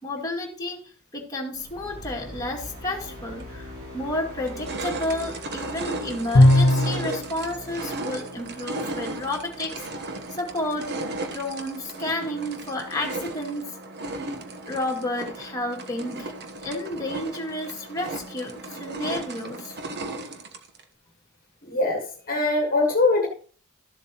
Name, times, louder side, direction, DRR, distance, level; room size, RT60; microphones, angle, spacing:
voice 1, 0.0-0.8 1.1-9.9 10.3-10.9 11.3-13.7 14.7-19.8, left 1 dB, 15° left, -1 dB, 2.2 m, -31 dB
sound 1, 1.5-12.0, left 1 dB, 75° right, 5.0 m, -44 dB
sound 2, 3.4-3.5 4.0-20.8, right 2 dB, 50° right, 1.2 m, -35 dB
Bowed string instrument, 6.3-7.2, left 1 dB, 60° left, 1.2 m, -16 dB
voice 2, 21.7-23.3, left 2 dB, 40° left, 1 dB, 1.5 m, -22 dB
13.0 x 7.4 x 3.0 m, 0.42 s
head